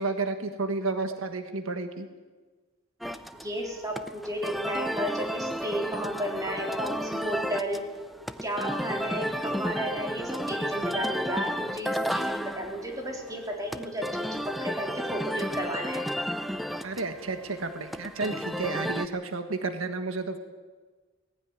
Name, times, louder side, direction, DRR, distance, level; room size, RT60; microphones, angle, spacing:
voice 1, 0.0-2.1 16.8-20.4, right 3 dB, 90° right, 7 dB, 1.5 m, -31 dB
sound 1, 3.0-19.1, equal, ahead, 0.7 m, -33 dB
voice 2, 3.4-7.8 8.4-16.0, equal, 15° right, 0 dB, 3.8 m, -33 dB
18.5 x 15.5 x 9.6 m, 1.4 s
head